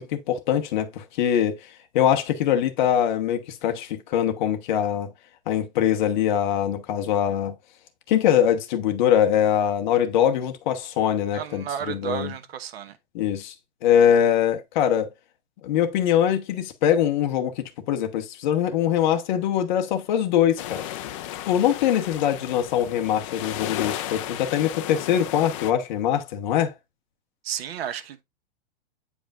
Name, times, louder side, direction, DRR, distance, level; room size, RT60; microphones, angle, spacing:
voice 1, 0.0-1.6 1.9-5.1 5.5-7.5 8.1-12.3 13.1-13.5 13.8-15.1 15.6-20.8 21.4-26.7, left 9 dB, 50° left, 1.1 m, -23 dB
voice 2, 11.3-13.0 27.4-28.2, right 9 dB, 75° right, 1.1 m, -32 dB
sound 1, 20.6-25.7, left 12 dB, 30° left, 0.5 m, -34 dB
9.0 x 4.9 x 2.4 m
supercardioid pair, 160°, 31 cm